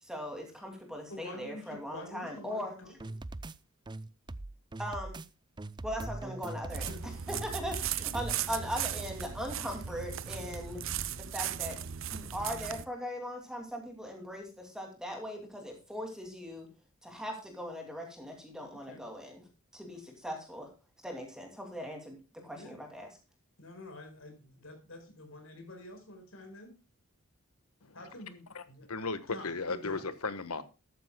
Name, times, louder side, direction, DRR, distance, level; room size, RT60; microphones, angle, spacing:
voice 1, 0.0-2.8 4.8-5.2 5.8-10.8 11.3-11.8 12.1-16.7 17.0-19.4 19.7-20.7 21.0-23.1, equal, 5° right, 2.6 m, -40 dB
voice 2, 1.1-2.9 6.0-6.3 6.9-7.2 18.7-19.0 22.5-22.8 23.6-26.7 27.9-28.9 29.3-30.0, left 1 dB, 70° left, 4.8 m, -48 dB
sound 1, 3.0-3.5 3.9-5.3 5.6-7.0 7.3-8.4, right 2 dB, 20° right, 0.4 m, -41 dB
sound 2, 6.7-12.8, right 9 dB, 60° right, 0.8 m, -37 dB
voice 3, 28.9-30.6, left 3 dB, 90° left, 1.4 m, -35 dB
14.0 x 12.0 x 2.3 m
head